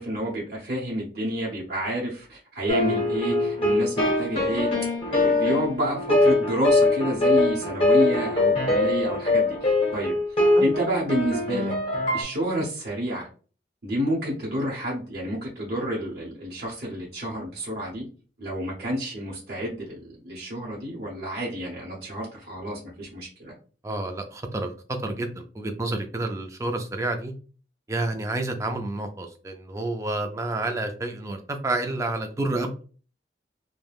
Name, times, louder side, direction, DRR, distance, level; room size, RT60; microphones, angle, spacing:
voice 1, 0.0-4.7 5.1-11.7 12.1-13.3 13.8-18.0 18.4-23.5, equal, 60° right, -4 dB, 0.8 m, -29 dB
sound 1, 2.7-12.2, left 2 dB, 30° left, 0.9 m, -22 dB
voice 2, 23.8-27.3 27.9-32.8, right 2 dB, 15° right, 5 dB, 0.3 m, -29 dB
3.3 x 2.1 x 2.3 m, 0.39 s
head